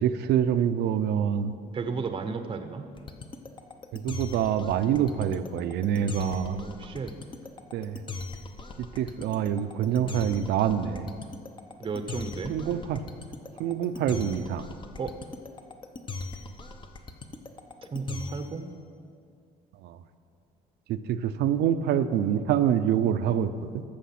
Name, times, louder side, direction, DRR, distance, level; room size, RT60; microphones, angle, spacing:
voice 1, 0.0-1.5 3.9-6.6 7.7-8.0 8.8-11.1 12.5-13.0 13.6-14.7 19.8-20.0 20.9-23.8, right 9 dB, 75° right, 11 dB, 0.6 m, -26 dB
voice 2, 1.7-2.9 6.6-7.1 11.8-12.6 15.0-15.1 17.9-18.7, right 4 dB, 30° right, 8 dB, 0.7 m, -33 dB
sound 1, 3.0-18.6, left 3 dB, 30° left, 0.8 m, -39 dB
14.0 x 6.5 x 5.9 m, 2.3 s
cardioid pair, 110°, 17 cm